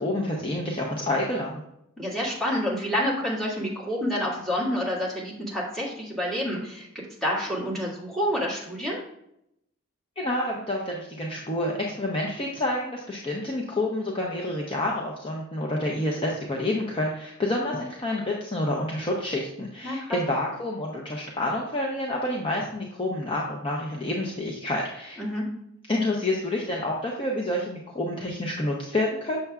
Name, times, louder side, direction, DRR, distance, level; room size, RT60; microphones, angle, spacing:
voice 1, 0.0-1.6 10.2-25.2 25.9-29.4, left 1 dB, 25° left, -2 dB, 0.7 m, -28 dB
voice 2, 2.0-9.0 19.8-20.2 25.2-25.4, equal, ahead, -7 dB, 1.9 m, -28 dB
6.8 x 6.6 x 2.4 m, 0.78 s
head